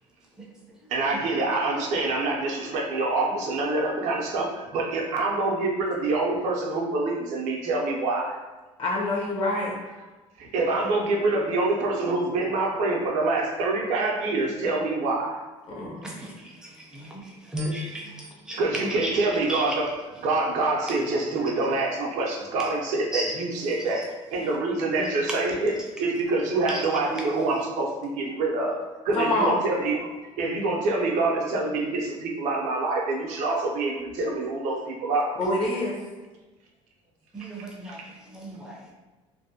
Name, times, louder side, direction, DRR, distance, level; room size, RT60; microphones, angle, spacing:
voice 1, 0.9-8.4 10.4-15.4 18.6-24.0 24.3-28.8 29.0-30.0 30.4-35.4 37.9-38.0, right 2 dB, 75° right, -1 dB, 0.5 m, -26 dB
voice 2, 8.8-9.8 15.7-16.1 29.1-29.7 35.4-36.0, left 1 dB, 45° left, -3 dB, 0.7 m, -26 dB
voice 3, 17.5-18.0 18.5-18.6 19.0-19.1 19.5-19.6 23.1-23.3 25.0-25.1 37.3-38.0 38.3-38.8, equal, 5° right, -3 dB, 0.5 m, -32 dB
2.6 x 2.1 x 2.7 m, 1.2 s
cardioid pair, 135°, 12 cm